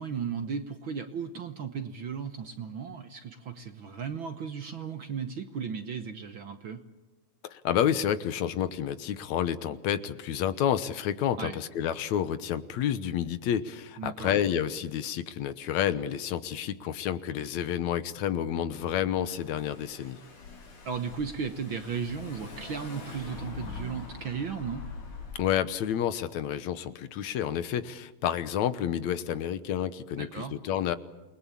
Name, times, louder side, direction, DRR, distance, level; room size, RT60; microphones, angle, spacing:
voice 1, 0.0-6.8 11.4-11.6 14.0-14.3 20.8-24.8 30.2-30.6, right 6 dB, 55° right, 8 dB, 1.5 m, -35 dB
voice 2, 7.5-20.2 25.4-31.0, left 10 dB, 75° left, 13 dB, 2.3 m, -29 dB
Car / Engine, 18.7-25.6, left 4 dB, 90° left, 5.3 m, -44 dB
29.0 x 20.5 x 8.5 m, 1.2 s
omnidirectional pair, 3.4 m